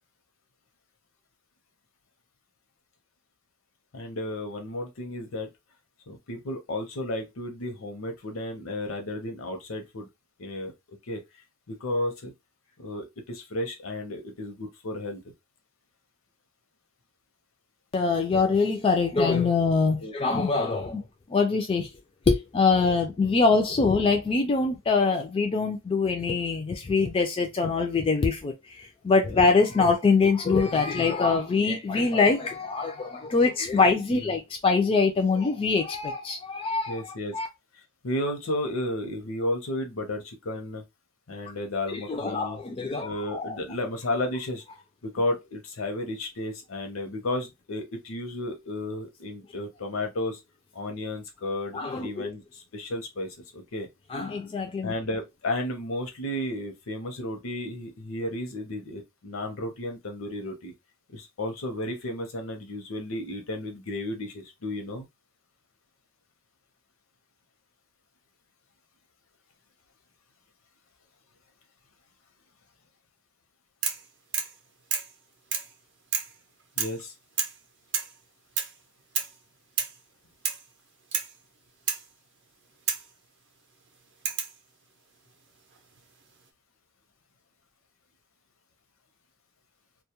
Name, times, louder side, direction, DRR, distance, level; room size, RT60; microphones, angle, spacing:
voice 1, 3.9-5.5 6.1-10.1 10.4-11.2 11.7-12.3 12.8-15.2 20.0-20.1 29.3-29.4 34.2-34.3 36.9-37.3 37.7-40.8 41.3-42.6 43.0-44.6 45.0-50.4 50.7-53.9 54.8-60.7 61.1-65.1 76.8-77.1, left 1 dB, 70° left, 0.7 m, -33 dB
voice 2, 17.9-21.0 21.3-21.9 22.3-37.0 37.3-37.5 41.9-43.6 51.7-52.3 54.1-54.9, left 4 dB, 25° left, 0.3 m, -24 dB
sound 1, 73.8-74.1 74.3-74.6 74.9-75.1 75.5-75.7 76.1-76.4 76.8-77.0 77.4-77.6 77.9-78.2 78.6-78.8 79.2-79.4 79.8-80.0 80.4-80.7 81.1-81.3 81.9-82.1 82.9-83.1 84.3-84.6 85.7-86.2, right 7 dB, 60° right, 0.5 m, -30 dB
2.2 x 2.1 x 2.8 m
head